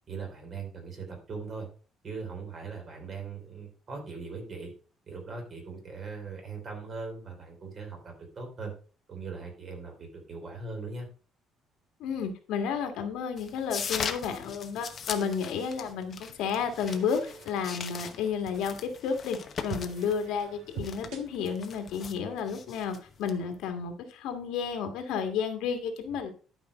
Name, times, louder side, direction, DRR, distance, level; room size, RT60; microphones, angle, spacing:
voice 1, 0.1-1.7 2.0-4.7 5.1-8.7 9.1-11.1, right 4 dB, 35° right, 2 dB, 3.4 m, -40 dB
voice 2, 12.0-19.4 19.6-26.3, left 6 dB, 80° left, 6 dB, 1.8 m, -32 dB
sound 1, 13.4-23.7, left 6 dB, 35° left, 1.0 m, -40 dB
sound 2, 15.9-22.4, right 5 dB, 75° right, 2.2 m, -47 dB
11.5 x 5.2 x 5.0 m, 0.38 s
cardioid pair, 170°, 0 cm